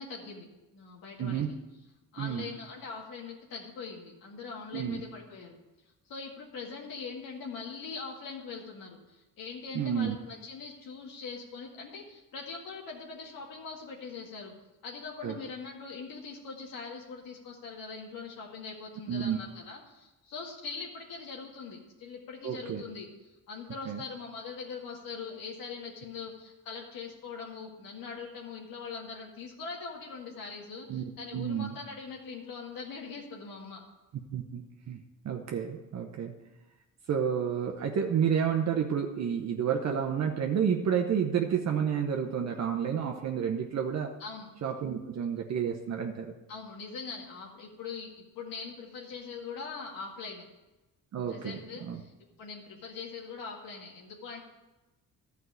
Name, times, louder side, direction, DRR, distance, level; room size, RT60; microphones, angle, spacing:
voice 1, 0.0-1.6 2.1-5.6 6.1-14.5 14.8-33.8 44.2-44.5 46.5-50.5 51.3-52.1 52.4-54.4, left 5 dB, 85° left, -2 dB, 2.0 m, -42 dB
voice 2, 1.2-1.5 2.2-2.5 4.7-5.0 9.7-10.2 15.2-15.3 19.1-19.4 22.4-22.8 23.9-24.0 30.9-31.8 34.3-36.4 37.1-44.1 44.6-46.3 51.1-52.0, right 8 dB, 50° right, 2 dB, 0.9 m, -30 dB
12.0 x 4.7 x 8.1 m, 1.1 s
cardioid pair, 120°, 34 cm